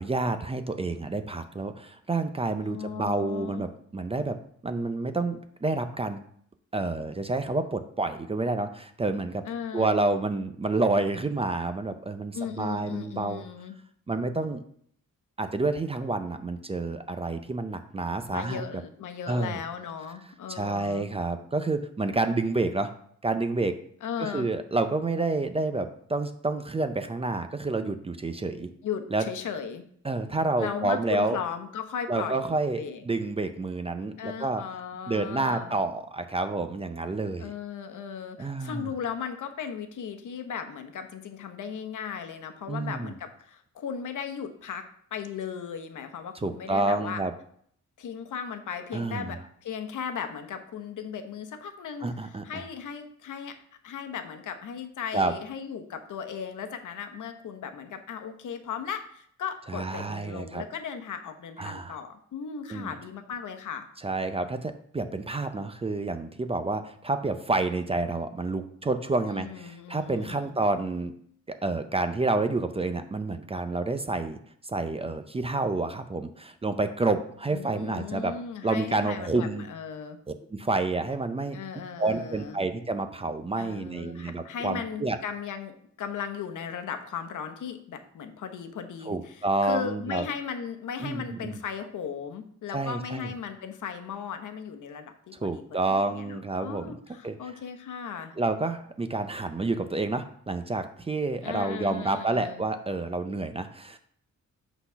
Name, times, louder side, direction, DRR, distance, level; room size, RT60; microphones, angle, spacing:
voice 1, 0.0-4.4 4.6-6.2 6.7-9.4 9.7-13.4 14.1-14.6 15.4-18.6 19.3-19.6 20.5-22.9 23.2-23.8 24.2-28.7 29.1-29.2 30.0-31.4 32.1-34.6 35.1-37.5 38.4-38.9 42.7-43.1 46.4-47.3 48.9-49.4 52.0-52.6 55.1-55.3 59.7-60.6 61.6-62.0 62.7-62.9 64.0-71.1 71.5-78.3 78.6-79.7 80.5-81.6 82.0-85.2 89.1-90.2 91.0-91.6 92.7-93.3 95.3-97.0 97.2-97.4 98.4-104.0, right 2 dB, 20° right, 9 dB, 0.5 m, -29 dB
voice 2, 2.6-3.7 9.4-9.9 12.3-13.7 18.3-21.1 24.0-24.5 28.8-29.8 30.6-33.0 34.2-35.8 37.4-47.2 48.0-53.6 53.8-63.9 69.3-70.6 77.5-80.2 81.5-82.6 83.6-98.3 101.4-102.6, left 7 dB, 75° left, 7 dB, 1.0 m, -37 dB
8.3 x 4.0 x 5.6 m, 0.64 s
wide cardioid pair, 145°, 31 cm